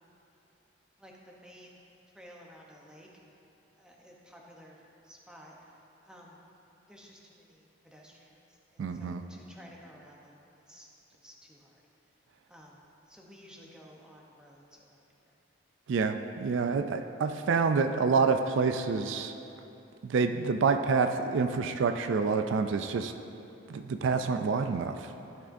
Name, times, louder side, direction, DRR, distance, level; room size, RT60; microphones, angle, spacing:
voice 1, 1.0-1.8 2.1-3.1 3.8-4.8 5.0-5.6 6.0-6.4 6.9-8.4 8.7-10.3 10.7-10.9 11.2-11.7 12.5-12.8 13.1-15.0, equal, 5° right, -2 dB, 0.8 m, -53 dB
voice 2, 8.8-9.2 15.9-19.4 20.0-23.1 23.7-25.1, right 5 dB, 70° right, 7 dB, 0.3 m, -27 dB
14.0 x 6.2 x 2.6 m, 2.9 s
head